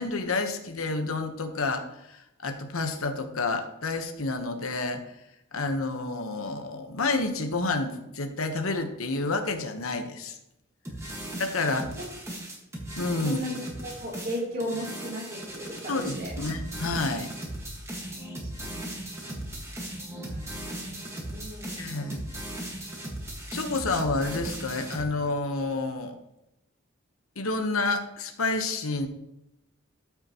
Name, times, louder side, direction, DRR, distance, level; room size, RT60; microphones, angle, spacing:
voice 1, 0.0-5.0 5.5-10.4 11.4-11.9 13.0-13.4 15.9-17.3 21.8-22.2 23.5-26.2 27.4-29.1, left 3 dB, 90° left, 7 dB, 1.1 m, -29 dB
sound 1, 10.8-25.0, right 1 dB, 15° right, 1.6 m, -37 dB
voice 2, 13.2-13.6 13.8-16.3 18.4-19.5 20.1-21.9, equal, 45° right, -4 dB, 3.0 m, -37 dB
13.0 x 5.8 x 3.0 m, 0.86 s
head